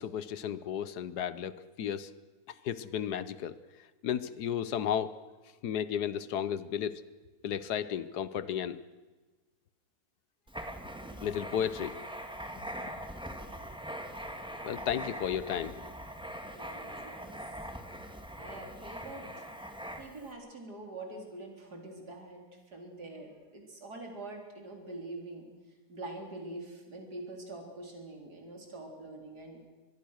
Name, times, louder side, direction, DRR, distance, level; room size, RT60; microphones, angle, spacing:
voice 1, 0.0-2.1 2.6-3.5 4.0-5.1 5.6-7.0 7.4-8.8 11.2-12.0 12.9-13.0 14.6-15.8, left 9 dB, 80° left, 16 dB, 1.5 m, -33 dB
Writing, 10.5-20.3, equal, 5° right, 1.9 m, -42 dB
voice 2, 16.5-17.4 18.4-19.5 20.0-25.5 25.9-29.6, right 2 dB, 75° right, 2 dB, 4.4 m, -45 dB
24.5 x 21.0 x 6.4 m, 1.3 s
omnidirectional pair, 1.7 m